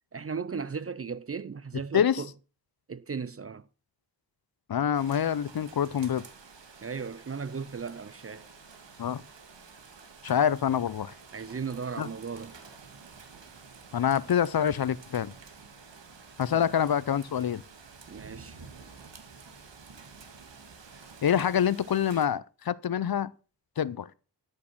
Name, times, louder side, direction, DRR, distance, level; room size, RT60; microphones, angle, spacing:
voice 1, 0.1-2.3 2.9-3.7 6.8-8.5 11.3-12.6 16.5-16.7 18.1-18.6, right 5 dB, 35° right, 0.5 m, -36 dB
voice 2, 4.7-6.2 9.0-9.2 10.2-11.1 12.0-12.1 13.9-15.3 16.4-17.6 21.2-23.3 23.8-24.1, left 9 dB, 60° left, 0.6 m, -26 dB
Rain, 4.9-22.3, right 5 dB, 85° right, 1.9 m, -50 dB
12.5 x 6.6 x 6.1 m
wide cardioid pair, 90°, 43 cm